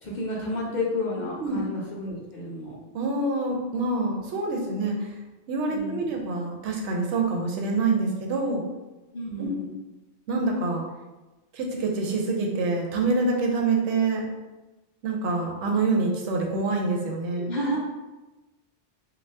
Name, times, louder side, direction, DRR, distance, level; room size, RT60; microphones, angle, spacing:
voice 1, 0.0-2.8 5.7-6.1 9.1-9.6 17.4-17.8, left 1 dB, 50° left, -4 dB, 0.6 m, -31 dB
voice 2, 2.9-5.1 5.5-8.6 9.4-9.5 10.3-10.8 11.5-14.3 15.0-17.5, right 3 dB, 90° right, 0 dB, 0.9 m, -26 dB
2.6 x 2.3 x 3.2 m, 1.1 s
omnidirectional pair, 1.2 m